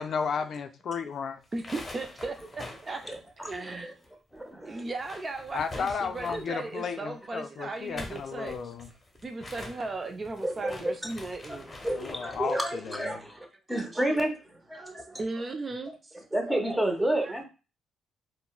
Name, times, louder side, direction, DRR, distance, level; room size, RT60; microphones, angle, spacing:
voice 1, 0.0-1.4 5.5-8.9 11.9-13.2, left 6 dB, 60° left, 0.3 m, -33 dB
sound 1, 1.4-4.1 4.3-4.4 4.8-6.6 7.7-12.5, left 2 dB, 25° left, 0.9 m, -45 dB
voice 2, 1.5-3.1 3.5-3.9 4.7-8.6 9.2-11.7 14.7-16.2, right 3 dB, 30° right, 0.3 m, -37 dB
voice 3, 10.4-10.9 11.5-15.2 16.3-17.4, right 1 dB, 10° right, 0.8 m, -30 dB
3.6 x 2.0 x 2.3 m
cardioid pair, 90°, 0 cm